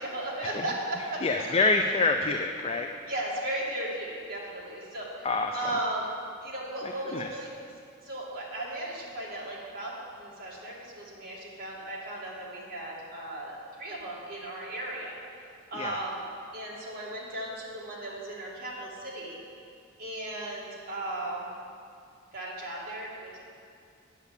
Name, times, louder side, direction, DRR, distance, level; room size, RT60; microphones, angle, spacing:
voice 1, 0.0-1.2 3.1-5.3 5.5-6.1 6.4-7.5 8.0-15.1 15.7-16.2 16.5-19.4 20.0-21.5 22.3-23.4, right 1 dB, 45° right, -5 dB, 2.3 m, -36 dB
voice 2, 1.2-2.9 5.2-5.6 6.8-7.3 15.7-16.0, left 3 dB, 30° left, 4 dB, 0.4 m, -27 dB
8.3 x 6.9 x 8.2 m, 2.4 s
head